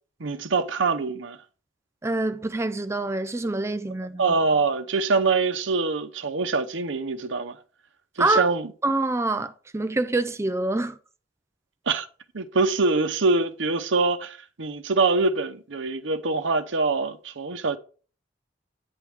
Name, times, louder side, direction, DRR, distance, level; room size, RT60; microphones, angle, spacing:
voice 1, 0.2-1.4 4.2-7.6 8.2-8.7 11.9-12.1 12.3-17.8, right 3 dB, 75° right, 0.8 m, -24 dB
voice 2, 2.0-4.3 8.2-8.4 8.8-11.0, right 2 dB, 15° right, 0.4 m, -26 dB
9.7 x 3.5 x 6.3 m
head